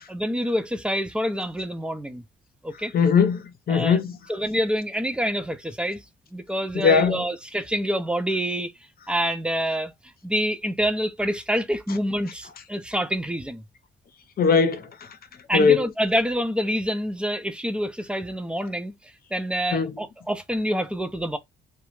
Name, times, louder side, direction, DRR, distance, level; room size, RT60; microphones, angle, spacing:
voice 1, 0.1-2.2 2.6-2.9 3.7-4.0 4.3-6.0 6.3-8.7 9.1-9.9 10.2-13.6 15.5-18.9 19.3-21.4, equal, 5° right, 0.4 m, -27 dB
voice 2, 2.9-4.1 6.7-7.2 14.4-14.9 15.5-15.8 19.7-19.9, left 6 dB, 50° left, 0.7 m, -19 dB
2.3 x 2.0 x 3.0 m
cardioid pair, 90°, 20 cm